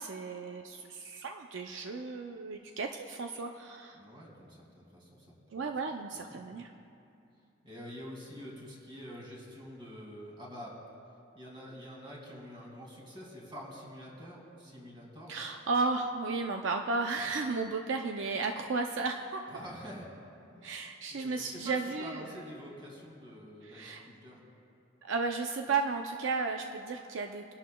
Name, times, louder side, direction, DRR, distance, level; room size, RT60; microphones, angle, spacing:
voice 1, 0.0-4.0 5.5-6.7 15.3-19.4 20.6-22.4 23.6-24.0 25.0-27.5, right 4 dB, 70° right, 4 dB, 0.5 m, -34 dB
voice 2, 3.9-5.3 5.5-5.7 6.3-6.5 7.6-10.8 11.4-15.4 19.5-20.1 21.1-24.4, equal, 25° right, -3 dB, 2.4 m, -47 dB
21.5 x 11.5 x 2.2 m, 2.6 s
head